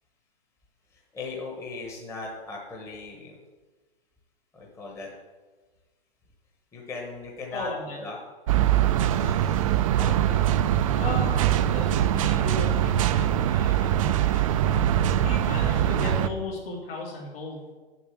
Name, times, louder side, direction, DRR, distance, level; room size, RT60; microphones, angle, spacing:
voice 1, 0.9-3.3 4.5-5.1 6.7-7.7 8.0-8.2 8.8-10.9, left 3 dB, 10° left, -2 dB, 1.1 m, -39 dB
voice 2, 7.5-8.0 9.1-9.5 10.9-14.9 15.2-17.6, left 3 dB, 65° left, -6 dB, 2.7 m, -36 dB
sound 1, 8.5-16.3, right 11 dB, 35° right, 0.4 m, -23 dB
7.1 x 7.1 x 7.8 m, 1.3 s
hypercardioid pair, 145°, 32 cm